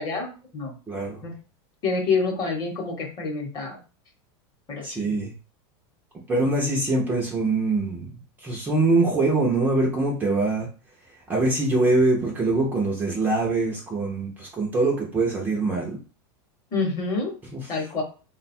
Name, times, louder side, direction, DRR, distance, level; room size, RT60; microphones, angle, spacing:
voice 1, 0.0-0.7 1.2-1.3 1.8-3.8 4.7-5.1 16.7-17.3 17.7-18.0, left 4 dB, 25° left, 2 dB, 0.9 m, -27 dB
voice 2, 0.9-1.3 4.8-5.3 6.3-8.1 8.4-10.7 11.3-16.0 17.5-17.7, right 2 dB, 10° right, -2 dB, 0.5 m, -23 dB
3.7 x 2.2 x 4.2 m, 0.35 s
supercardioid pair, 165°, 14 cm